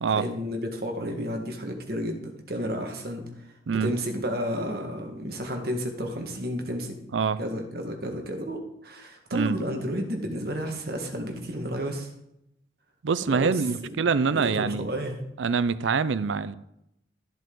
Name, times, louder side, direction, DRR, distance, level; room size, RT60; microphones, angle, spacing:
voice 1, 0.1-3.3 3.7-7.0 7.4-12.1 13.3-13.6 13.9-14.0 14.3-15.2, equal, 55° right, 3 dB, 1.6 m, -31 dB
voice 2, 13.0-14.9 15.4-16.5, right 5 dB, 85° right, 16 dB, 0.5 m, -25 dB
13.5 x 7.6 x 3.8 m, 0.81 s
head